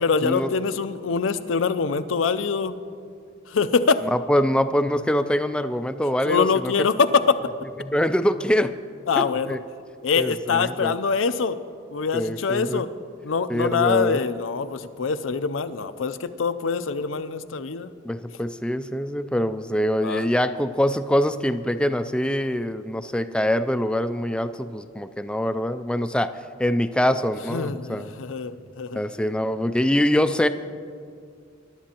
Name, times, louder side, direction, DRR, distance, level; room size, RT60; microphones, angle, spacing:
voice 1, 0.0-2.7 3.5-4.0 6.3-7.4 9.1-9.6 10.0-11.6 11.9-12.9 13.2-17.9 20.0-20.3 27.5-29.0, left 5 dB, 90° left, 12 dB, 0.5 m, -24 dB
voice 2, 4.1-6.7 7.8-8.7 9.2-9.6 10.2-10.9 12.1-12.9 13.5-14.2 18.0-26.3 26.6-28.2 28.9-30.5, equal, 5° left, 10 dB, 0.3 m, -24 dB
22.5 x 11.5 x 2.9 m, 2.3 s
head